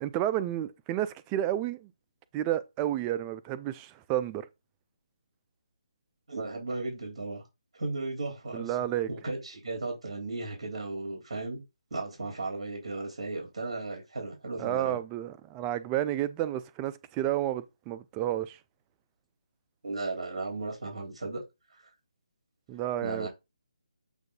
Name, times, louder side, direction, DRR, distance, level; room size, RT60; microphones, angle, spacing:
voice 1, 0.0-1.9 2.3-4.5 8.5-9.1 14.6-18.6 22.7-23.3, right 12 dB, 15° right, 0.4 m, -31 dB
voice 2, 6.3-7.4 7.7-8.7 9.1-11.6 11.9-15.0 19.8-21.4 21.7-21.9 23.0-23.3, right 3 dB, 65° right, 3.2 m, -35 dB
8.1 x 2.7 x 5.2 m
hypercardioid pair, 165°, 3 cm